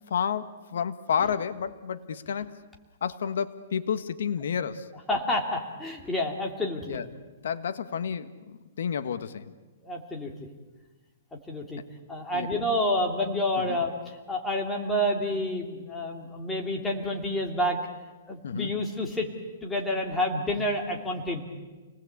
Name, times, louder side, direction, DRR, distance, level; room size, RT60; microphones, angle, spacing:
voice 1, 0.0-2.6 3.0-4.9 6.9-7.1 7.4-9.5 12.3-12.5 13.6-13.8 18.4-18.7, left 7 dB, 70° left, 11 dB, 1.4 m, -30 dB
voice 2, 5.1-7.0 9.8-10.3 11.5-11.8 12.1-17.8 18.3-19.3 19.6-21.4, left 1 dB, 10° left, 0 dB, 3.0 m, -29 dB
29.5 x 20.0 x 8.4 m, 1.3 s
hypercardioid pair, 160°, 0 cm